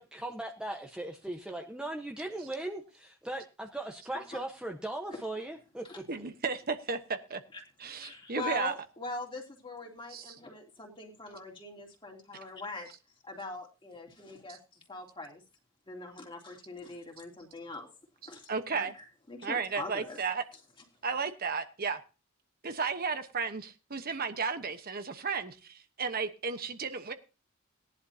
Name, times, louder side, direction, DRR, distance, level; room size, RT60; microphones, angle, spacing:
voice 1, 0.0-5.8, right 1 dB, 5° right, 1 dB, 1.1 m, -38 dB
voice 2, 6.1-7.4 7.8-8.7 10.1-10.3 14.5-14.6 18.5-18.9 19.4-20.4 21.0-22.0 22.6-27.1, right 5 dB, 45° right, 8 dB, 1.1 m, -34 dB
voice 3, 8.0-12.9 13.2-15.4 15.9-17.9 18.2-20.2, left 3 dB, 25° left, 1 dB, 3.1 m, -42 dB
18.5 x 11.0 x 2.8 m, 0.32 s
head